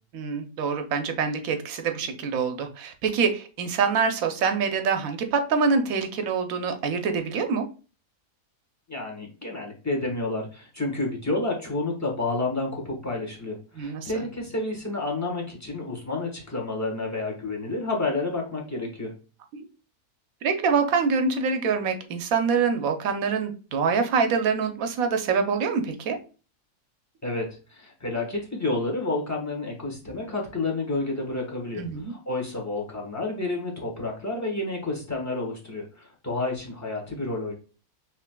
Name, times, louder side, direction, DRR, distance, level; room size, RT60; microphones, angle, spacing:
voice 1, 0.1-7.7 13.8-14.1 20.4-26.2 31.8-32.1, right 5 dB, 70° right, 6 dB, 1.1 m, -25 dB
voice 2, 8.9-19.1 27.2-37.5, left 2 dB, 10° left, -1 dB, 1.2 m, -30 dB
5.8 x 3.1 x 2.2 m, 0.36 s
omnidirectional pair, 1.6 m